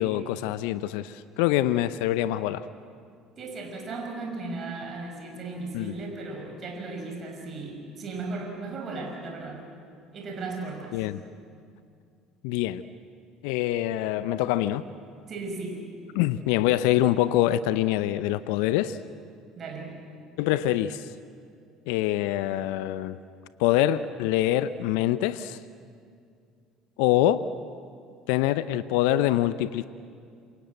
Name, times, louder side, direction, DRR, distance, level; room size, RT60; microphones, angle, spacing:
voice 1, 0.0-2.7 5.7-5.9 10.9-11.2 12.4-12.8 13.4-14.8 16.1-19.0 20.4-21.1 21.9-23.2 23.6-25.6 27.0-27.4 28.3-29.9, left 13 dB, 70° left, 14 dB, 0.7 m, -25 dB
voice 2, 3.4-9.6 10.1-11.1 15.3-15.9 19.5-19.9 20.5-20.6, right 3 dB, 45° right, 2 dB, 6.1 m, -36 dB
27.5 x 27.0 x 7.8 m, 2.3 s
hypercardioid pair, 65°, 0 cm